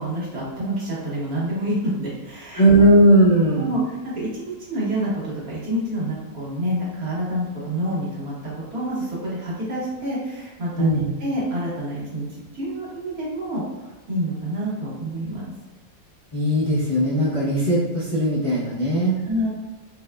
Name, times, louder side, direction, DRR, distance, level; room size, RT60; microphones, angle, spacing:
voice 1, 0.0-2.9 3.6-13.6 14.1-15.4 19.2-19.5, right 1 dB, 85° right, -7 dB, 1.7 m, -28 dB
voice 2, 2.5-3.7 10.8-11.1 16.3-19.2, right 1 dB, 40° left, -9 dB, 0.4 m, -18 dB
4.5 x 2.1 x 2.3 m, 1.2 s
omnidirectional pair, 1.5 m